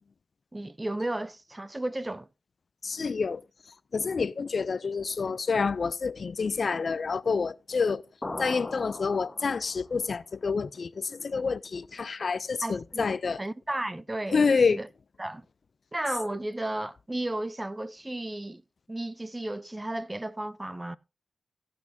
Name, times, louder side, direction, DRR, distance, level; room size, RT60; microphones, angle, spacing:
voice 1, 0.5-2.3 12.6-13.1 13.4-14.9 15.2-15.4 15.9-18.6 18.9-21.0, right 1 dB, 20° right, 0.7 m, -33 dB
voice 2, 2.8-3.4 3.9-8.0 8.4-13.4 14.3-14.8, left 5 dB, 60° left, 0.4 m, -28 dB
sound 1, 8.2-9.9, left 2 dB, 30° left, 1.2 m, -38 dB
15.5 x 8.2 x 2.7 m
cardioid pair, 50°, 0 cm